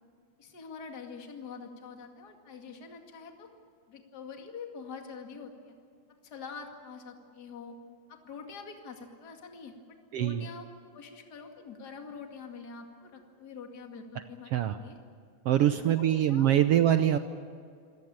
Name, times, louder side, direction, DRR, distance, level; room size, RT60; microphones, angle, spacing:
voice 1, 0.4-3.5 3.9-5.7 6.2-7.8 8.1-10.7 10.9-14.9 15.6-16.5, left 5 dB, 35° left, 3 dB, 2.5 m, -45 dB
voice 2, 10.1-10.5 14.5-14.8 15.4-17.2, right 11 dB, 75° right, 9 dB, 1.4 m, -24 dB
26.0 x 17.5 x 8.9 m, 2.2 s
omnidirectional pair, 3.5 m